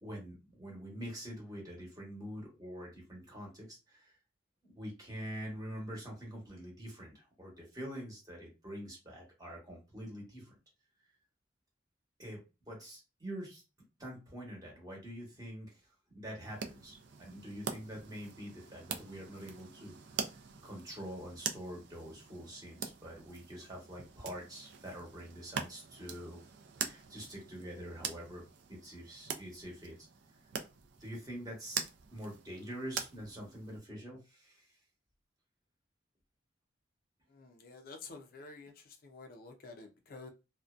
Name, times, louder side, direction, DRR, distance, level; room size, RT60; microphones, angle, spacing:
voice 1, 0.0-4.2 4.6-10.5 12.2-13.6 14.0-15.8 16.1-19.9 20.6-26.4 26.8-28.4 28.7-30.1 31.0-31.8 32.1-34.7, equal, 20° right, 1.0 m, -45 dB
sound 1, 16.4-33.8, right 6 dB, 70° right, 0.4 m, -44 dB
voice 2, 37.3-40.3, left 3 dB, 50° left, 0.4 m, -50 dB
2.5 x 2.1 x 2.3 m
head